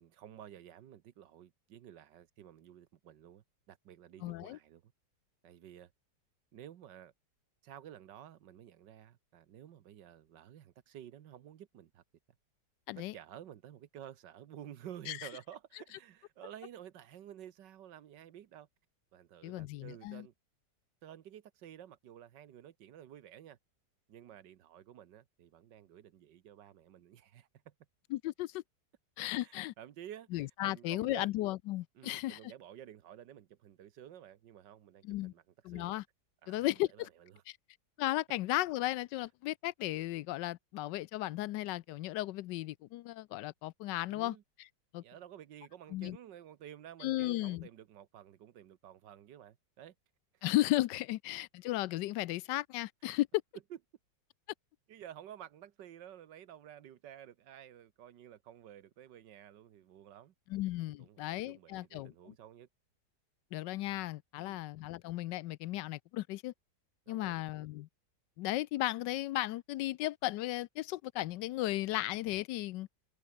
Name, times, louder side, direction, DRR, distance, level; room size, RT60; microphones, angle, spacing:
voice 1, 0.0-4.9 5.4-5.9 6.5-7.1 7.6-12.0 13.0-18.7 19.1-20.3 21.0-23.6 24.1-27.7 29.4-31.3 31.9-36.0 36.4-37.4 44.1-44.4 44.9-49.9 50.3-50.4 53.7-53.8 54.9-60.3 61.0-62.7 64.4-64.6 67.1-67.4, right 10 dB, 85° right, 1.7 m, -52 dB
voice 2, 4.2-4.6 12.9-13.1 15.1-15.2 19.4-20.3 28.1-28.6 29.2-29.7 30.3-32.4 35.0-35.3 35.6-36.0 36.5-37.1 38.0-44.3 44.9-45.0 45.9-46.2 47.0-47.7 50.4-53.3 60.5-62.1 63.5-66.5 67.1-67.9 68.4-72.9, left 16 dB, 85° left, 1.2 m, -35 dB
omnidirectional pair, 1.9 m